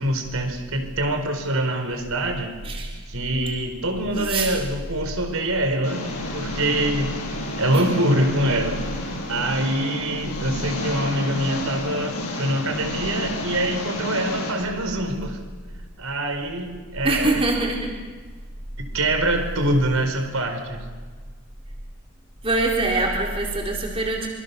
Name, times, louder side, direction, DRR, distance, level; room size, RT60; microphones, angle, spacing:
voice 1, 0.0-2.5 3.1-8.8 9.3-15.4 16.0-17.4 18.8-20.8, right 1 dB, 75° right, 5 dB, 4.6 m, -24 dB
voice 2, 4.1-4.5 7.7-7.9 17.0-17.9 22.4-24.3, right 2 dB, 25° right, -1 dB, 4.2 m, -23 dB
Engine, 5.8-14.5, left 1 dB, 90° left, 7.7 m, -30 dB
26.0 x 25.5 x 7.1 m, 1.5 s
head